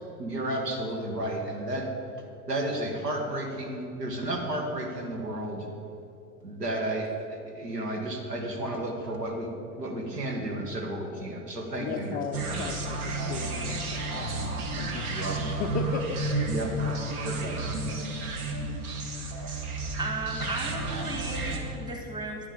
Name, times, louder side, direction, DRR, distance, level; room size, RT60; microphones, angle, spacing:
voice 1, 0.2-1.9 2.5-5.7 6.4-9.5 9.7-12.2 12.5-12.7 15.1-15.4 16.5-16.7 17.2-17.6, right 1 dB, 85° right, 2 dB, 1.8 m, -32 dB
voice 2, 11.7-12.8 13.0-16.7, left 5 dB, 20° left, 3 dB, 0.3 m, -36 dB
sound 1, 12.3-21.6, right 2 dB, 65° right, 1.7 m, -32 dB
voice 3, 20.0-22.5, right 2 dB, 10° right, 1 dB, 1.6 m, -35 dB
9.8 x 9.1 x 5.1 m, 2.7 s
figure-of-eight pair, 90°, 47 cm